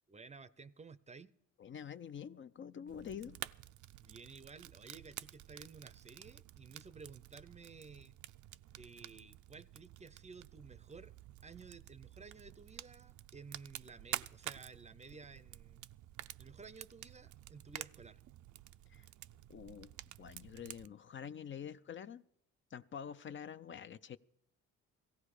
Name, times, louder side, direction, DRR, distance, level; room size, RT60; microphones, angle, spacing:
voice 1, 0.1-1.3 4.0-8.2 8.8-11.1 11.4-16.0 16.4-18.2, right 4 dB, 20° right, 0.6 m, -54 dB
voice 2, 1.6-3.4 18.9-19.1 19.5-19.9 20.2-22.2 22.7-24.2, left 8 dB, 40° left, 0.5 m, -47 dB
Fire, 2.9-20.9, right 14 dB, 75° right, 0.5 m, -50 dB
17.0 x 15.0 x 4.9 m
cardioid pair, 90°, 30 cm